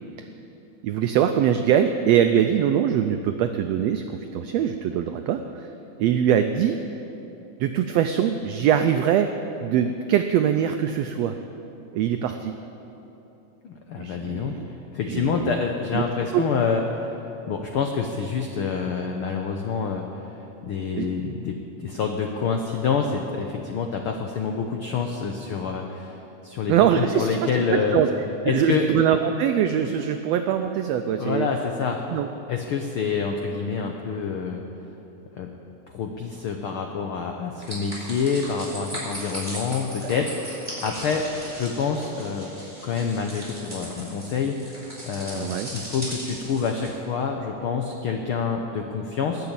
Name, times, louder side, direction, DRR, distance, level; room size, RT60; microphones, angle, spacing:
voice 1, 0.8-5.7 6.0-6.8 7.6-9.3 9.6-11.4 11.9-12.6 14.0-14.7 15.0-15.5 15.9-16.0 16.3-16.4 21.0-21.1 26.7-28.1 28.4-31.5 32.1-32.3 45.3-45.7, right 9 dB, 90° right, 7 dB, 1.4 m, -22 dB
voice 2, 13.6-14.5 14.9-17.2 17.5-20.1 20.6-28.0 28.5-28.8 31.2-32.0 32.5-34.6 35.4-35.5 35.9-41.3 41.5-42.5 42.8-49.5, left 5 dB, 80° left, 3 dB, 1.2 m, -27 dB
sound 1, 37.6-46.9, right 1 dB, 5° right, 4.2 m, -38 dB
20.0 x 6.9 x 8.7 m, 3.0 s
omnidirectional pair, 3.6 m